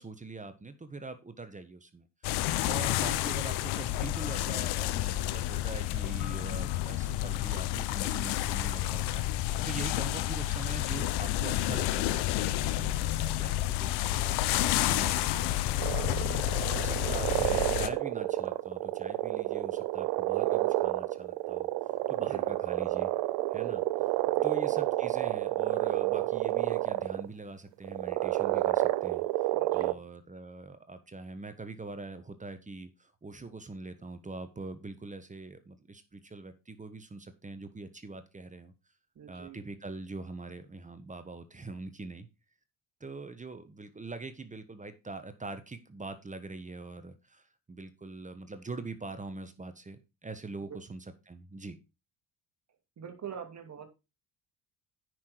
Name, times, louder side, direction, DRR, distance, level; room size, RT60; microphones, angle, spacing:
voice 1, 0.0-2.0 2.6-21.7 22.1-23.1 23.5-23.8 24.4-38.7 39.3-42.3 43.0-51.8, right 3 dB, 20° right, 10 dB, 1.3 m, -43 dB
sound 1, 2.2-17.9, left 14 dB, 75° left, 0.9 m, -30 dB
sound 2, 15.8-27.3 27.8-29.9, right 17 dB, 80° right, 0.7 m, -30 dB
voice 2, 16.9-17.5 22.1-22.5 24.2-24.8 29.5-30.0 39.1-39.7 50.6-50.8 53.0-53.9, right 8 dB, 40° right, 6 dB, 2.5 m, -45 dB
9.4 x 6.1 x 4.6 m, 0.27 s
supercardioid pair, 75°, 40 cm